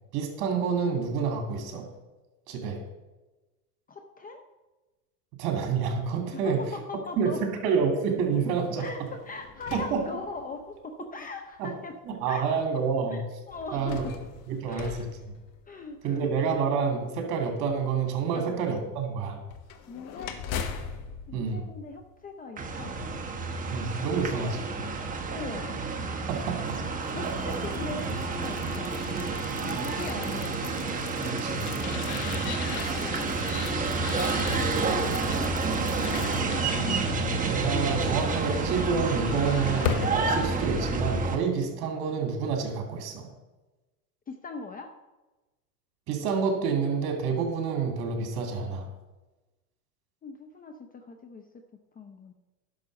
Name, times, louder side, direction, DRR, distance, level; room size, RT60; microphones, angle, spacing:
voice 1, 0.1-1.9 2.5-2.8 5.4-6.6 7.2-8.9 9.7-10.0 11.6-11.7 12.0-13.2 13.7-14.0 14.5-15.0 16.0-19.4 21.3-21.7 23.7-24.7 26.3-26.8 29.1-29.2 29.7-30.0 31.2-31.7 34.4-34.6 37.5-43.3 46.1-48.9, right 5 dB, 50° right, 3 dB, 2.7 m, -28 dB
voice 2, 3.9-4.4 6.3-7.4 8.8-9.0 9.3-12.0 12.3-12.5 13.1-13.2 13.5-14.1 14.7-15.0 15.7-16.3 18.3-18.5 19.9-20.3 21.3-23.2 25.3-25.8 27.1-29.0 29.5-30.7 32.7-33.7 34.5-35.5 36.2-37.5 44.3-44.9 50.2-51.6 52.0-52.3, left 4 dB, 20° left, 6 dB, 0.7 m, -40 dB
sound 1, 8.8-10.8 11.6-11.7 13.5-16.1 19.5-22.5, left 6 dB, 40° left, 1.1 m, -40 dB
sound 2, 22.6-41.4, right 3 dB, 15° right, 1.1 m, -29 dB
sound 3, 26.6-40.3, left 10 dB, 65° left, 1.0 m, -40 dB
10.5 x 6.3 x 5.2 m, 1.1 s
hypercardioid pair, 105°, 48 cm